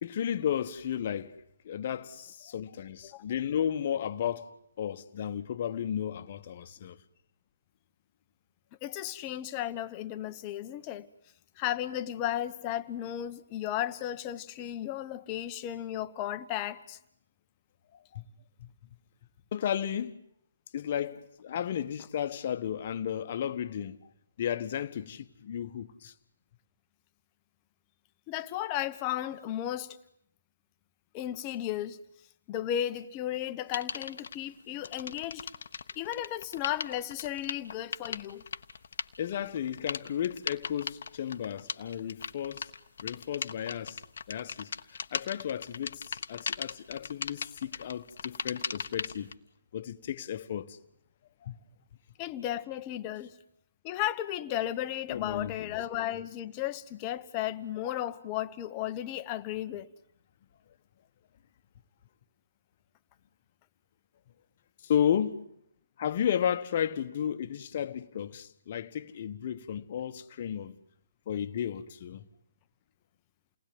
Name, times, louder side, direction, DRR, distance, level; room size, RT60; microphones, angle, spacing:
voice 1, 0.0-1.4 1.6-4.5 4.8-7.0 18.1-18.2 18.6-18.7 19.5-20.2 20.7-24.0 24.4-26.1 39.2-42.7 43.0-44.0 44.3-44.7 45.1-49.3 49.7-50.8 51.4-51.6 55.1-55.7 64.8-65.4 66.0-70.8 71.3-72.2, left 9 dB, 45° left, 1.4 m, -33 dB
voice 2, 8.8-11.1 11.6-17.0 28.3-30.0 31.1-32.0 32.5-35.5 36.0-38.4 52.2-53.3 53.8-59.9, left 12 dB, 25° left, 1.2 m, -34 dB
sound 1, 33.7-34.4 34.8-49.3, left 6 dB, 60° left, 1.1 m, -38 dB
29.0 x 19.5 x 9.4 m
hypercardioid pair, 145°, 0 cm